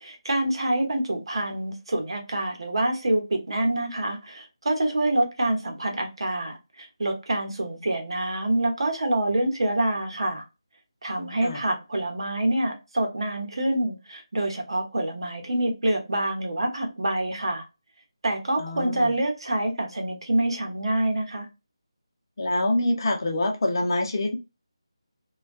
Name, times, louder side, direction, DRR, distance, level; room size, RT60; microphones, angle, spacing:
voice 1, 0.0-10.4 11.0-17.6 18.2-21.5, right 1 dB, 65° right, 0.9 m, -26 dB
voice 2, 18.6-19.1 22.4-24.4, left 1 dB, 45° left, 0.6 m, -25 dB
2.2 x 2.2 x 2.4 m
figure-of-eight pair, 160°, 3 cm